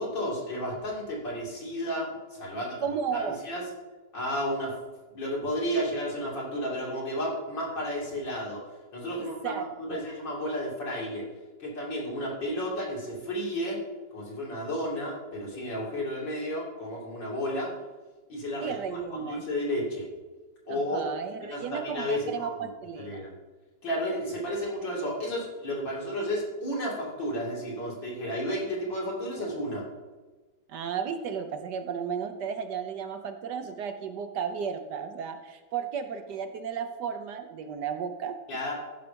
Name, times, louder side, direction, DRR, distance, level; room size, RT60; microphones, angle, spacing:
voice 1, 0.0-2.9 3.1-3.6 4.1-4.7 5.1-8.6 8.9-11.2 11.6-13.8 14.1-17.7 18.3-20.1 20.7-21.1 21.5-22.7 23.0-23.3 23.8-29.8 38.5-38.7, equal, 70° left, -4 dB, 3.6 m, -32 dB
voice 2, 2.8-3.4 9.4-10.0 18.6-19.4 20.7-23.2 30.7-38.4, right 7 dB, 70° right, 7 dB, 1.3 m, -34 dB
14.0 x 5.7 x 5.2 m, 1.3 s
omnidirectional pair, 2.0 m